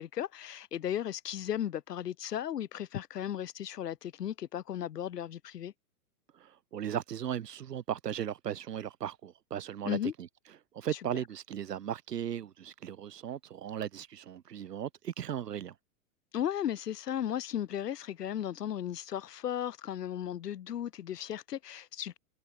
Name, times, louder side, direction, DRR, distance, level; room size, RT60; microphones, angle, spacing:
voice 1, 0.0-5.7 9.8-10.1 16.3-22.2, left 10 dB, 85° left, 5.9 m, -35 dB
voice 2, 6.3-10.3 10.7-15.7, right 10 dB, 90° right, 6.4 m, -37 dB
hypercardioid pair, 150°, 47 cm